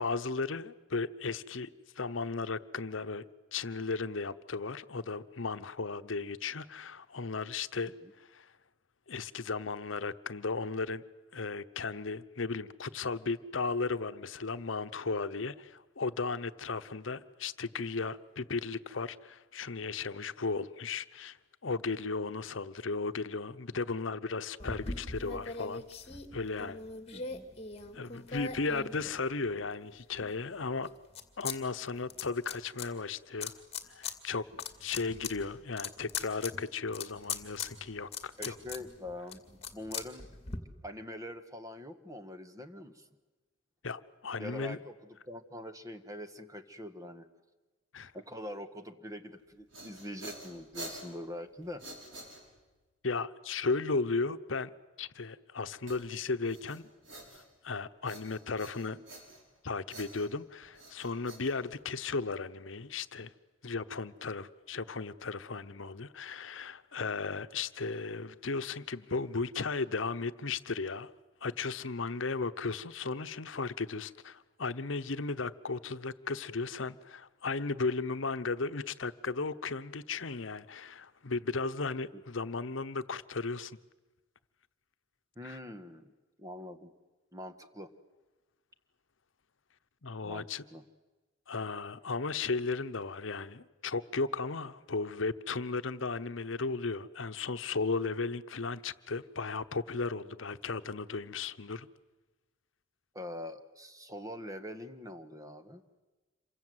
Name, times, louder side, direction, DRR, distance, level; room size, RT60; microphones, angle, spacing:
voice 1, 0.0-1.7 2.0-3.2 3.5-7.9 8.2-8.5 9.1-11.0 11.3-21.4 21.6-25.8 26.3-26.8 27.9-30.9 31.4-33.5 33.9-34.4 34.8-38.5 43.8-44.8 47.9-48.1 53.0-54.7 55.0-56.9 57.3-59.0 59.6-63.3 63.6-71.1 71.4-83.8 85.4-85.6 90.0-90.6 91.5-101.9, left 4 dB, 75° left, 0.9 m, -35 dB
sound 1, 24.6-29.7 30.2-31.6 31.8-32.9 33.4-34.1 34.5-40.6, left 5 dB, 30° left, 2.2 m, -41 dB
voice 2, 27.1-27.4 38.4-40.3 40.8-43.1 44.4-44.9 45.3-47.3 48.1-51.8 82.1-82.2 85.3-86.1 86.4-86.9 87.3-87.9 90.2-90.8 103.1-105.8, left 1 dB, 20° right, 1.5 m, -44 dB
sound 2, 49.4-52.8 55.9-57.7 58.0-59.6 59.9-62.1, right 1 dB, 75° right, 7.0 m, -48 dB
27.5 x 24.0 x 8.0 m
head